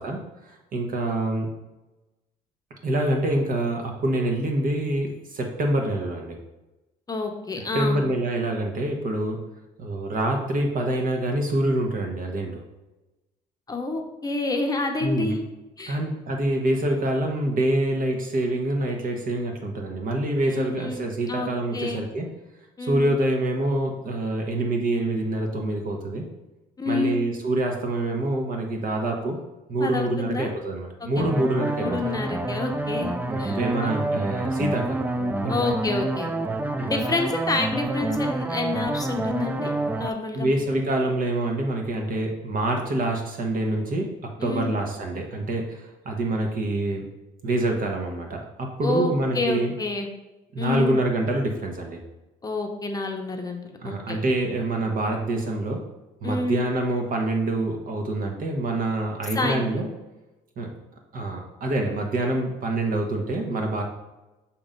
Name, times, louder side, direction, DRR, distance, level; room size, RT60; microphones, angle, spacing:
voice 1, 0.0-1.5 2.8-6.4 7.7-9.4 9.8-12.6 15.0-15.3 15.9-22.3 22.8-26.3 26.9-29.4 29.7-32.2 33.3-35.5 36.8-36.9 40.3-47.1 47.4-49.7 50.5-52.0 53.8-55.8 56.2-59.9 60.6-60.7 61.1-63.8, right 1 dB, 55° right, 2 dB, 1.4 m, -26 dB
voice 2, 7.1-8.0 13.7-15.4 15.8-16.0 20.4-22.0 22.8-23.2 26.8-27.2 29.8-30.5 31.2-31.5 31.7-33.1 33.4-34.3 35.5-36.3 36.8-40.6 44.4-44.7 48.8-50.1 50.6-51.0 52.4-54.2 56.2-56.6 59.3-59.7, left 3 dB, 20° left, 3 dB, 0.8 m, -29 dB
sound 1, 31.2-40.1, right 2 dB, 10° right, 0.4 m, -28 dB
7.1 x 2.9 x 5.2 m, 1.0 s
cardioid pair, 110°, 17 cm